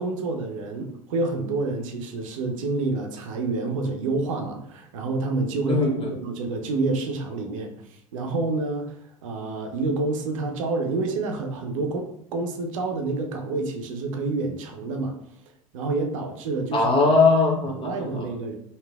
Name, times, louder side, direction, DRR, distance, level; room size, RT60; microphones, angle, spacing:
voice 1, 0.0-5.8 6.2-8.9 9.2-15.2 15.7-16.9 17.8-18.6, right 3 dB, 70° right, 3 dB, 0.5 m, -28 dB
voice 2, 5.7-6.1 16.7-18.3, left 3 dB, 30° left, 1 dB, 0.9 m, -20 dB
3.1 x 2.8 x 2.3 m, 0.70 s
hypercardioid pair, 75°, 17 cm